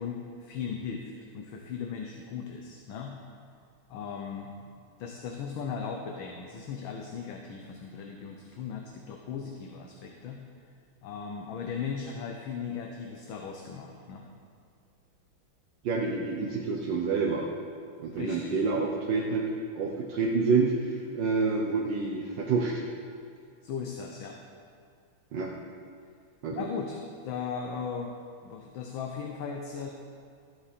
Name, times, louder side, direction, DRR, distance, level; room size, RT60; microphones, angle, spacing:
voice 1, 0.0-3.1 3.9-4.5 5.0-10.4 11.0-14.3 18.1-18.6 23.6-24.4 26.5-28.1 28.4-29.9, left 6 dB, 75° left, 2 dB, 1.5 m, -37 dB
voice 2, 15.8-17.5 18.0-19.5 19.7-22.8 25.3-25.5 26.4-26.7, right 4 dB, 65° right, -2 dB, 1.5 m, -28 dB
13.5 x 7.9 x 4.2 m, 2.2 s
omnidirectional pair, 2.3 m